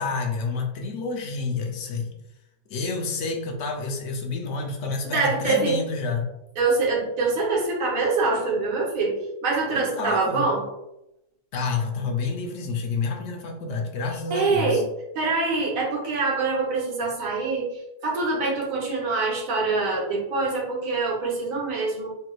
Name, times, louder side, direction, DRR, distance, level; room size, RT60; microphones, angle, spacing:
voice 1, 0.0-2.1 2.7-6.3 9.7-10.5 11.5-14.8, left 4 dB, 70° left, 2 dB, 0.9 m, -29 dB
voice 2, 5.0-5.8 6.6-10.7 14.3-14.9 15.1-22.2, right 3 dB, 85° right, -2 dB, 1.3 m, -25 dB
3.3 x 3.0 x 2.3 m, 0.88 s
omnidirectional pair, 1.4 m